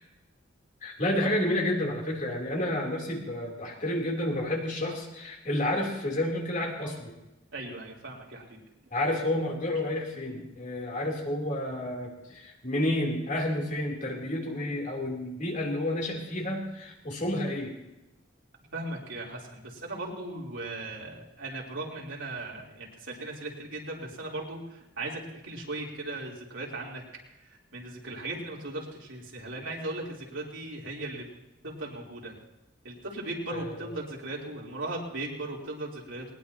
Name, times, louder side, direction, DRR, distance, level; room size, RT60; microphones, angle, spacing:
voice 1, 0.8-7.1 8.9-17.7 33.5-33.9, left 1 dB, 40° left, -1 dB, 3.4 m, -30 dB
voice 2, 7.5-8.6 9.8-9.9 10.3-10.6 18.7-27.0 27.7-31.2 31.6-32.4 32.8-36.3, right 2 dB, 75° right, -3 dB, 3.6 m, -38 dB
20.0 x 19.5 x 2.9 m, 0.95 s
head